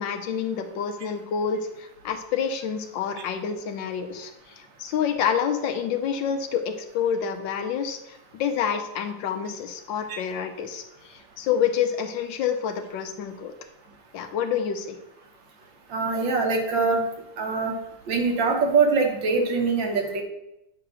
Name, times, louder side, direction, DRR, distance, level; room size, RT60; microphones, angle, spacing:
voice 1, 0.0-13.5 14.1-15.0, left 7 dB, 75° left, 6 dB, 1.5 m, -28 dB
voice 2, 15.9-17.0 17.4-17.7 18.1-20.2, right 4 dB, 75° right, 2 dB, 1.9 m, -23 dB
8.7 x 2.9 x 6.2 m, 0.87 s
omnidirectional pair, 2.1 m